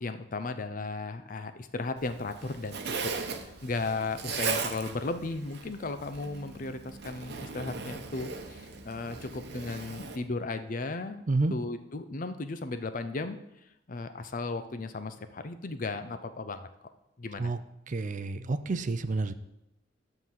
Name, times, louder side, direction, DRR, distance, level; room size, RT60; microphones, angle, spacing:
voice 1, 0.0-3.1 3.6-11.2 11.5-13.4 13.9-16.7 17.2-17.5, left 3 dB, 45° left, 10 dB, 0.6 m, -35 dB
Zipper (clothing), 2.0-10.2, right 5 dB, 60° right, 0.9 m, -38 dB
voice 2, 17.9-19.3, right 3 dB, 45° right, 11 dB, 0.5 m, -29 dB
11.0 x 3.9 x 7.4 m, 0.87 s
head